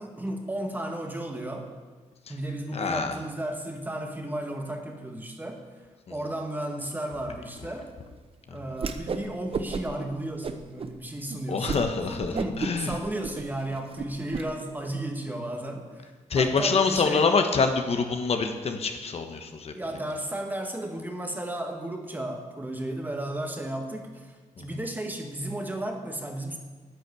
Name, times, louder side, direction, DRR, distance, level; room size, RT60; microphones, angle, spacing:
voice 1, 0.0-1.7 2.3-5.6 6.1-7.9 8.5-15.9 16.3-17.3 19.7-26.6, right 1 dB, 15° right, 3 dB, 1.7 m, -34 dB
voice 2, 2.7-3.1 11.5-12.9 16.3-19.7, left 4 dB, 55° left, 6 dB, 1.2 m, -25 dB
Whoosh swoosh swish, 8.8-9.3 9.5-10.0 10.4-10.9 11.3-11.4 11.7-11.9 12.2-14.4, right 5 dB, 50° right, 0.9 m, -32 dB
10.5 x 9.7 x 8.2 m, 1.4 s
wide cardioid pair, 130°, 13 cm